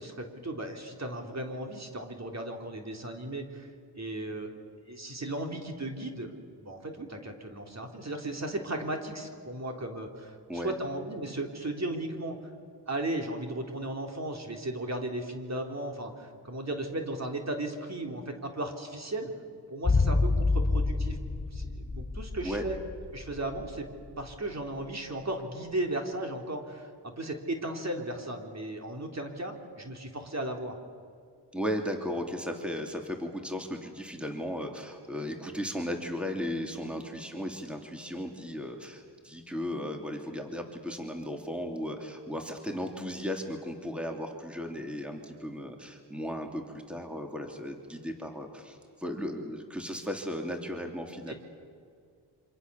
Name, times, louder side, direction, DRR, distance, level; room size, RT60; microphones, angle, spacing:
voice 1, 0.0-3.7 3.9-4.5 4.8-6.3 6.6-12.4 12.9-19.3 19.7-21.2 21.5-22.8 23.1-23.9 24.2-30.8 36.8-36.9 51.3-51.4, right 1 dB, 40° right, 3 dB, 3.8 m, -36 dB
sound 1, 19.8-24.1 24.3-24.4, left 3 dB, 30° left, 4.2 m, -28 dB
voice 2, 31.5-51.3, equal, 5° right, 3 dB, 2.9 m, -36 dB
27.0 x 26.0 x 7.1 m, 2.2 s
cardioid pair, 70°, 42 cm